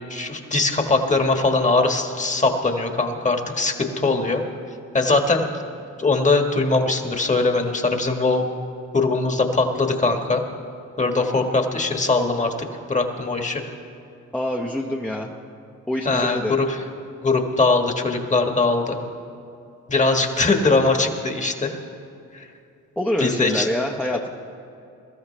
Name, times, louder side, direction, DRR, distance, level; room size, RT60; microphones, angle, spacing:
voice 1, 0.1-4.5 4.9-5.5 6.0-8.5 8.9-10.4 11.0-13.6 16.0-16.8 17.2-19.0 19.9-21.7 22.3-22.5 23.2-23.7, left 3 dB, 25° left, 4 dB, 1.5 m, -21 dB
voice 2, 14.3-15.3 15.9-16.5 23.0-24.3, left 1 dB, 5° left, -1 dB, 0.8 m, -25 dB
22.0 x 13.5 x 3.3 m, 2.6 s
cardioid pair, 90°, 30 cm